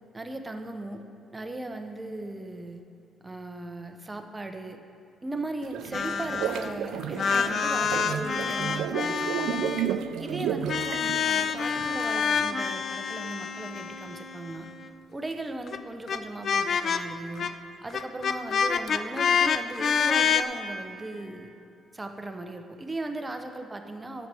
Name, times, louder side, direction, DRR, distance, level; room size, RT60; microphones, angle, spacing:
voice 1, 0.1-1.1 1.3-2.8 3.2-4.8 5.2-9.6 10.2-14.7 15.1-17.5 17.8-21.5 21.9-24.3, right 2 dB, 20° right, 6 dB, 0.7 m, -37 dB
sound 1, 5.6-12.4, right 9 dB, 85° right, 0.3 m, -32 dB
sound 2, 5.9-6.8 7.0-10.0 10.7-14.9 15.7-15.8 16.1-16.2 16.4-17.0 17.4-17.5 17.9-20.4, left 6 dB, 55° left, 0.4 m, -27 dB
11.0 x 7.4 x 3.4 m, 2.8 s
cardioid pair, 90°, 0 cm